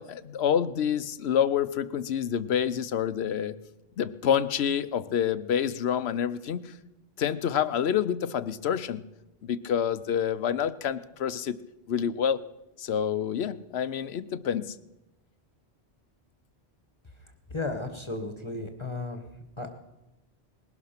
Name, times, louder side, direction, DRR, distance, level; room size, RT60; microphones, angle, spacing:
voice 1, 0.0-3.5 4.0-6.7 7.2-9.0 9.4-11.6 11.9-12.4 12.8-14.8, left 8 dB, 75° left, 14 dB, 1.0 m, -27 dB
voice 2, 17.5-19.2 19.6-19.7, left 2 dB, 25° left, 7 dB, 1.3 m, -34 dB
20.0 x 12.0 x 5.8 m, 0.96 s
omnidirectional pair, 1.1 m